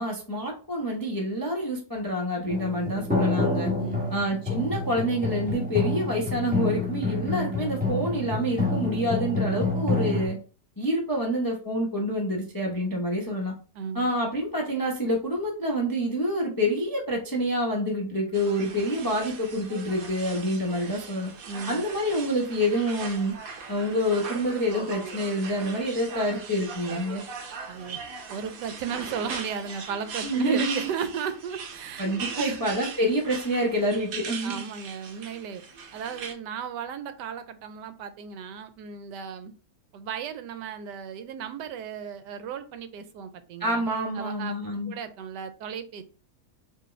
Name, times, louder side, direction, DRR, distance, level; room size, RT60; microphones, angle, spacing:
voice 1, 0.0-3.7 4.1-10.4 10.8-13.5 13.9-21.3 21.7-23.3 23.7-27.2 30.2-30.9 32.0-34.6 43.6-44.9, equal, 30° left, -1 dB, 0.4 m, -27 dB
sound 1, 2.5-10.3, left 3 dB, 10° right, 0.7 m, -28 dB
voice 2, 3.8-4.2 13.7-14.1 21.5-21.8 27.7-28.0 28.3-32.7 34.4-35.6 35.9-39.5 39.9-43.9 44.1-44.5 44.8-46.0, right 7 dB, 85° right, 10 dB, 1.2 m, -35 dB
sound 2, 18.3-36.3, right 5 dB, 60° right, 1.1 m, -39 dB
4.6 x 2.8 x 3.1 m, 0.37 s
omnidirectional pair, 1.8 m